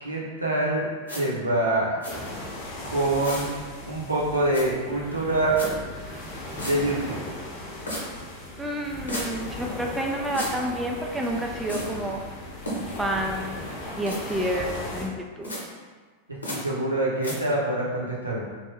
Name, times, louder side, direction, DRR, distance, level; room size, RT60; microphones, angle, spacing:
voice 1, 0.0-0.9 1.1-2.0 2.8-3.5 3.9-5.6 6.6-7.3 16.3-18.5, right 1 dB, 80° right, -5 dB, 0.8 m, -25 dB
sound 1, 1.1-1.2 2.0-2.1 3.2-3.5 4.5-4.6 5.6-5.7 6.6-6.7 7.9-8.0 9.1-9.3 10.3-10.5 11.7-11.9 12.7-13.0 14.1-14.2 15.4-15.6 16.4-16.6 17.2-17.3, equal, 75° left, 0.9 m, -32 dB
sound 2, 2.1-15.1, left 1 dB, 40° left, 0.7 m, -37 dB
voice 2, 8.6-12.2 13.0-13.6 14.0-15.5, right 1 dB, 10° right, 0 dB, 0.3 m, -29 dB
3.4 x 2.2 x 3.2 m, 1.4 s
figure-of-eight pair, 90°, 0 cm